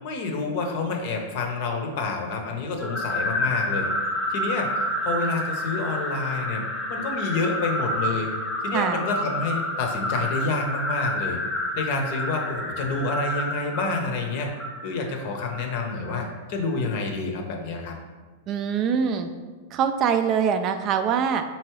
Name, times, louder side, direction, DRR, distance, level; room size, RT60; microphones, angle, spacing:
voice 1, 0.0-3.9 4.3-6.6 6.9-8.3 8.6-11.4 11.7-14.5 14.8-17.9, left 3 dB, 55° left, 3 dB, 0.7 m, -28 dB
sound 1, 2.8-16.2, left 1 dB, 15° left, 0.6 m, -29 dB
voice 2, 8.7-9.1 18.5-19.3 19.7-21.4, right 7 dB, 40° right, 8 dB, 0.3 m, -23 dB
4.5 x 2.9 x 3.0 m, 1.3 s
hypercardioid pair, 110°, 0 cm